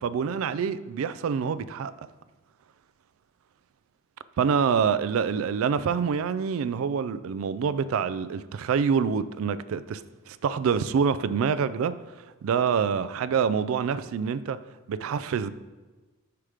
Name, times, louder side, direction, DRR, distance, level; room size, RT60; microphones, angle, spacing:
voice 1, 0.0-1.9 4.4-10.0 10.3-11.9 12.4-14.6 14.9-15.5, right 6 dB, 70° right, 0.3 m, -26 dB
5.8 x 4.9 x 4.9 m
head